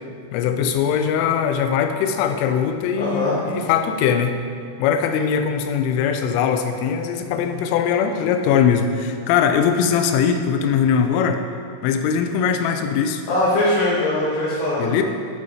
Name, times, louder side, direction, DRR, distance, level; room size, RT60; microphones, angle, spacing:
voice 1, 0.3-4.4 4.8-11.4 11.8-13.2 14.8-15.0, left 7 dB, 85° left, 7 dB, 3.1 m, -21 dB
voice 2, 2.9-3.4 13.3-14.9, left 1 dB, 65° left, -10 dB, 3.3 m, -21 dB
8.0 x 7.6 x 4.2 m, 2.2 s
omnidirectional pair, 5.7 m